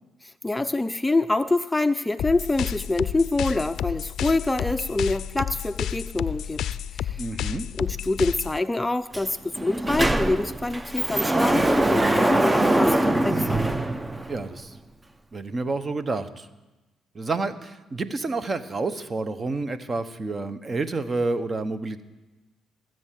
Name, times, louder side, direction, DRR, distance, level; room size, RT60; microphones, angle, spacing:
voice 1, 0.2-6.6 6.9-7.2 7.7-13.8, left 2 dB, 15° left, 11 dB, 0.4 m, -26 dB
sound 1, 2.2-8.6, left 10 dB, 70° left, 0.4 m, -31 dB
voice 2, 7.2-7.7 14.3-14.8 15.3-16.5 17.1-22.0, right 3 dB, 35° right, 12 dB, 1.0 m, -29 dB
Sliding door, 9.1-9.2 9.6-14.6, right 1 dB, 20° right, 0.7 m, -23 dB
17.0 x 7.8 x 7.6 m, 1.1 s
supercardioid pair, 65°, 0 cm